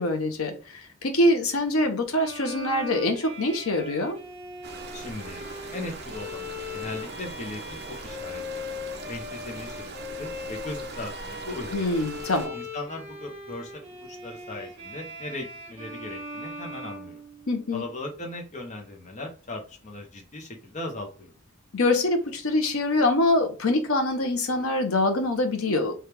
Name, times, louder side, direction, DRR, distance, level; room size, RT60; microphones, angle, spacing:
voice 1, 0.0-4.2 11.7-12.5 17.5-17.9 21.7-25.9, left 2 dB, 85° left, 0.8 m, -24 dB
Bowed string instrument, 2.1-17.8, left 2 dB, 30° right, 1.2 m, -40 dB
sound 1, 4.6-12.5, right 3 dB, 50° right, 0.7 m, -41 dB
voice 2, 4.9-5.4 5.7-8.4 9.1-12.0 12.5-13.7 14.2-17.2 17.7-21.3, left 2 dB, 35° left, 0.7 m, -38 dB
3.4 x 2.4 x 4.4 m
head